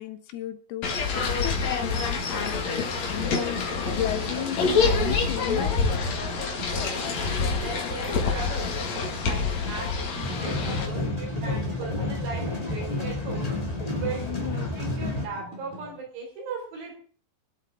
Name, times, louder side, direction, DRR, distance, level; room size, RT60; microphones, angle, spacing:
voice 1, 0.0-2.6 3.1-3.6 3.9-6.2 6.8-6.9 7.5-7.7 14.2-14.7, left 11 dB, 75° left, 9 dB, 3.0 m, -34 dB
sound 1, 0.8-10.9, left 4 dB, 50° left, 2.9 m, -27 dB
sound 2, 1.8-16.0, left 1 dB, 60° right, 4.1 m, -40 dB
voice 2, 6.7-8.7 9.2-13.5 14.0-16.9, right 4 dB, 85° right, -1 dB, 6.5 m, -38 dB
sound 3, 10.2-15.2, left 2 dB, 20° left, 1.1 m, -30 dB
24.5 x 8.1 x 3.7 m, 0.43 s
omnidirectional pair, 4.7 m